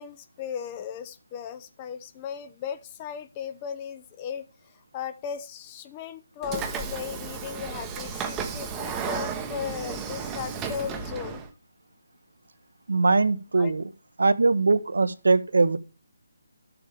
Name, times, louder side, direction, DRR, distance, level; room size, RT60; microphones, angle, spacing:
voice 1, 0.0-4.4 4.7-11.4 13.5-13.7, left 8 dB, 20° left, 0.7 m, -36 dB
Train / Sliding door, 6.4-11.5, right 6 dB, 15° right, 0.9 m, -33 dB
voice 2, 12.9-13.8 14.2-15.8, right 3 dB, 75° right, 0.9 m, -21 dB
12.5 x 7.0 x 3.5 m
figure-of-eight pair, 160°, 0 cm